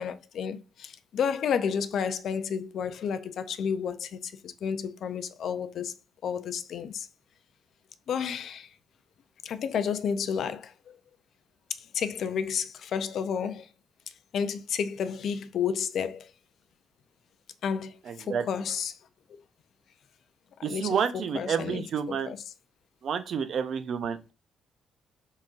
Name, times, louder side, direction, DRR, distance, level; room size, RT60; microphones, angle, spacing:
voice 1, 0.0-5.9 6.2-7.1 8.1-8.7 9.4-11.0 11.8-13.7 14.3-16.3 17.6-19.0 20.6-22.4, left 7 dB, 65° left, 0.5 m, -31 dB
voice 2, 18.1-18.4 20.6-22.3 23.0-24.3, right 7 dB, 60° right, 0.6 m, -29 dB
4.1 x 3.7 x 2.4 m
cardioid pair, 90°, 0 cm